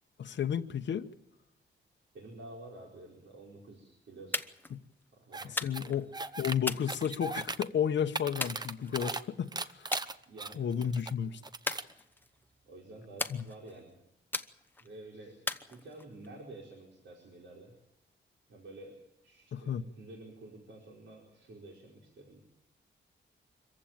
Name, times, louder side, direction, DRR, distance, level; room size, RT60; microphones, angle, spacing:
voice 1, 0.2-1.1 4.7-4.8 5.5-6.1 6.4-9.9 10.6-11.4 13.3-13.4 19.5-19.8, left 8 dB, 65° left, 4 dB, 1.0 m, -32 dB
voice 2, 2.1-4.4 5.1-5.6 5.9-6.0 10.3-10.9 12.7-14.0 14.8-15.4 15.7-17.7 18.5-19.0 19.2-22.4, right 2 dB, 65° right, 0 dB, 4.8 m, -50 dB
sound 1, 4.3-4.7 5.6-6.0 6.7-7.6 8.4-9.2 9.9-10.1 10.5-10.9 11.7-12.4 13.2-13.8 14.3-14.9 15.5-16.3, left 2 dB, 10° left, 0.9 m, -38 dB
sound 2, 5.3-5.5 5.7-6.6 6.9-7.7 8.0-9.2 9.5-11.1 11.4-11.9, right 3 dB, 20° right, 0.8 m, -38 dB
25.5 x 15.5 x 9.0 m, 0.86 s
wide cardioid pair, 170°, 20 cm